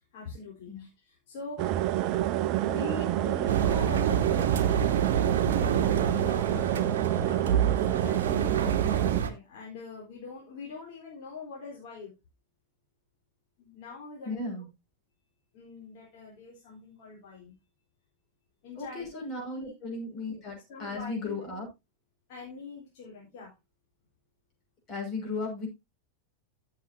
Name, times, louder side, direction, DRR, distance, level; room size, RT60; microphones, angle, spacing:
voice 1, 0.1-1.7 2.6-5.1 5.5-12.1 13.6-14.6 15.5-17.5 18.6-19.2 19.5-19.7 20.7-21.4 22.3-23.5, left 4 dB, 50° left, -4 dB, 4.0 m, -43 dB
sound 1, 1.6-9.2, right 14 dB, 40° right, 0.6 m, -28 dB
Engine, 3.5-9.3, right 7 dB, 60° right, 1.1 m, -28 dB
voice 2, 14.2-14.7 18.8-21.7 24.9-25.7, left 3 dB, 30° left, 0 dB, 6.3 m, -35 dB
15.0 x 6.9 x 2.8 m, 0.23 s
figure-of-eight pair, 90°, 0 cm